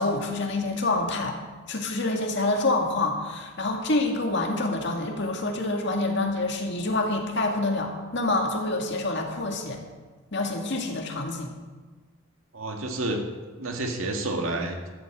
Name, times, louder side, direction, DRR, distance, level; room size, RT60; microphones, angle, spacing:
voice 1, 0.0-1.4 1.7-9.8 10.3-11.5, left 2 dB, 55° left, 2 dB, 2.0 m, -27 dB
voice 2, 12.5-13.3 13.6-14.9, right 2 dB, 75° right, 3 dB, 2.0 m, -29 dB
13.0 x 8.0 x 7.4 m, 1.3 s
head